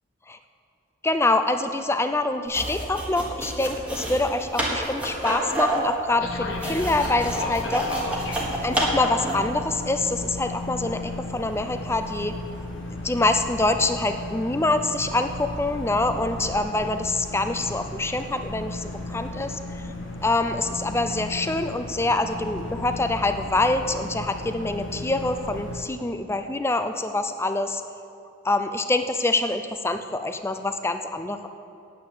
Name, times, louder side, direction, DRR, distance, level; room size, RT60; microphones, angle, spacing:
voice 1, 1.0-7.9 8.6-12.4 12.9-19.8 20.2-27.8 28.4-31.5, left 2 dB, 10° left, 8 dB, 0.5 m, -25 dB
sound 1, 2.5-9.5, right 1 dB, 5° right, 1.5 m, -29 dB
sound 2, 6.2-25.8, left 2 dB, 70° left, 1.3 m, -35 dB
8.7 x 8.6 x 8.8 m, 2.6 s
head